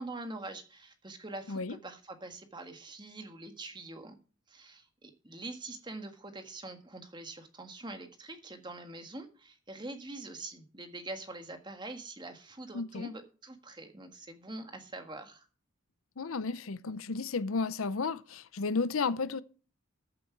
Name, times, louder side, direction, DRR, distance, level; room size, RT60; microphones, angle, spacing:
voice 1, 0.0-4.1 4.5-15.5, right 2 dB, 20° right, 1.6 m, -44 dB
voice 2, 12.7-13.1 16.2-19.4, left 4 dB, 75° left, 0.7 m, -33 dB
14.5 x 7.7 x 4.6 m
head